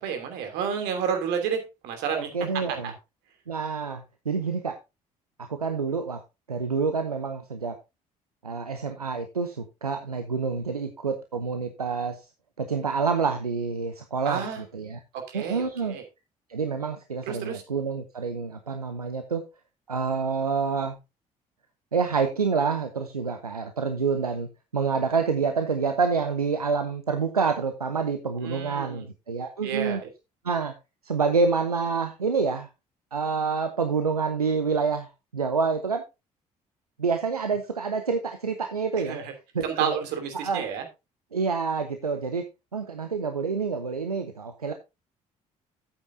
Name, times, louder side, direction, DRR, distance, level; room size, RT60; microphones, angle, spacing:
voice 1, 0.0-2.3 2.7-2.9 14.2-14.6 15.1-16.0 17.3-17.6 28.4-29.0 29.6-30.1 39.0-39.3 39.6-40.8, right 7 dB, 65° right, 5 dB, 2.9 m, -30 dB
voice 2, 2.2-2.9 3.5-4.8 5.4-6.2 6.5-7.8 8.4-12.2 12.6-14.5 14.7-15.0 15.3-16.0 16.5-19.4 19.9-21.0 21.9-24.5 24.7-30.0 30.4-30.7 31.0-32.7 33.1-36.0 37.0-39.2 39.5-39.9 40.3-40.6 41.3-42.4 42.7-44.7, right 5 dB, 90° right, 7 dB, 0.8 m, -27 dB
13.0 x 8.6 x 2.7 m, 0.25 s
figure-of-eight pair, 50°, 19 cm